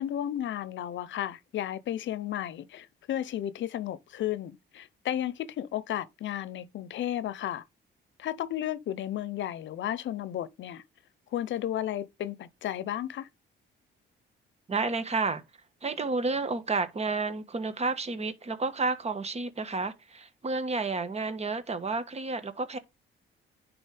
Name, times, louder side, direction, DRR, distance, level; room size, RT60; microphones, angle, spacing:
voice 1, 0.0-7.6 8.2-10.8 11.3-13.3, left 11 dB, 70° left, 0.7 m, -33 dB
voice 2, 14.7-15.4 15.8-22.8, right 3 dB, 30° right, 1.4 m, -31 dB
10.0 x 4.1 x 3.4 m
cardioid pair, 90°, 20 cm